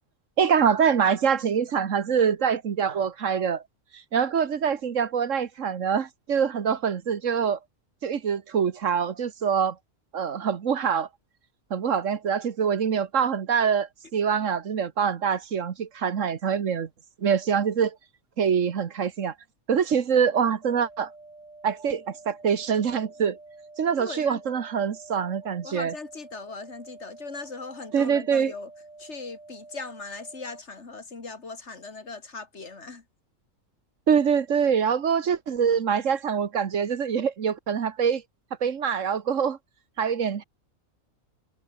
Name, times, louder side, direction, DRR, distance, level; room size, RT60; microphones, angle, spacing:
voice 1, 0.4-3.6 3.9-7.6 8.0-9.8 10.1-11.1 11.7-16.9 17.2-18.0 18.4-19.3 19.7-21.1 21.6-23.4 23.8-25.9 27.9-28.5 34.1-38.2 38.6-39.6 40.0-40.4, right 7 dB, 70° right, 1.6 m, -24 dB
sound 1, 20.6-30.6, right 3 dB, 30° right, 2.0 m, -48 dB
voice 2, 24.0-24.4 25.6-28.7 29.0-33.0, left 4 dB, 55° left, 2.7 m, -39 dB
omnidirectional pair, 1.4 m